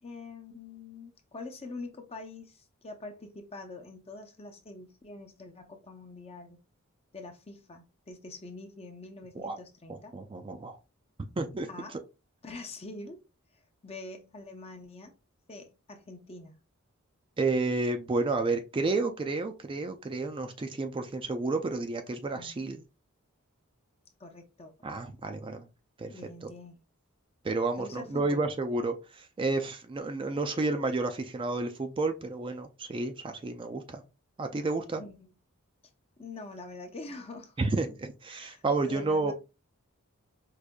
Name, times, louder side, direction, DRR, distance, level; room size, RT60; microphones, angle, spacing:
voice 1, 0.0-6.6 7.1-10.1 11.7-12.0 12.4-13.2 13.8-15.2 15.5-16.5 22.3-22.7 24.2-24.9 26.0-26.8 27.8-28.5 35.0-35.3 36.2-37.6 38.3-39.3, left 2 dB, 30° left, 0.6 m, -45 dB
voice 2, 10.1-10.8 11.4-12.0 17.4-22.8 24.8-25.7 26.0-26.1 26.4-26.5 27.4-34.0 34.4-35.0 37.6-39.3, right 3 dB, 25° right, 0.4 m, -31 dB
4.8 x 2.6 x 2.2 m
head